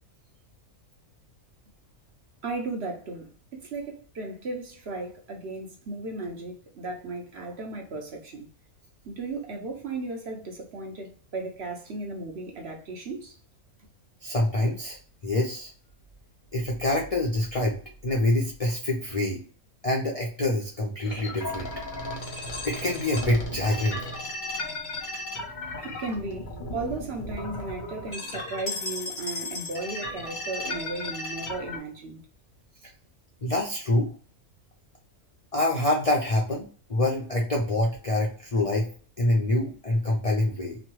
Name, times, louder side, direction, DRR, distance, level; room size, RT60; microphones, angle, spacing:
voice 1, 2.4-3.3 3.6-8.5 9.1-13.3 25.8-32.2, right 3 dB, 55° right, 0.8 m, -35 dB
voice 2, 14.2-15.0 15.2-15.7 16.5-19.4 19.8-21.7 22.6-24.0 25.6-25.8 33.4-34.1 35.5-38.9 39.2-40.8, left 1 dB, 70° left, 0.3 m, -26 dB
sound 1, 21.0-31.8, left 1 dB, 40° left, 0.7 m, -35 dB
3.0 x 2.2 x 2.9 m
omnidirectional pair, 1.5 m